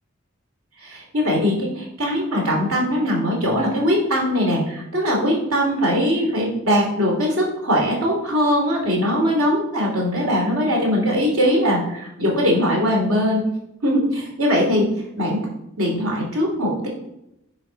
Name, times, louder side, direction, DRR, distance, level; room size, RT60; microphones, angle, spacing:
voice 1, 0.8-13.4 13.8-15.4 15.8-16.9, equal, 80° right, -1 dB, 2.8 m, -21 dB
10.0 x 4.4 x 4.4 m, 0.83 s
head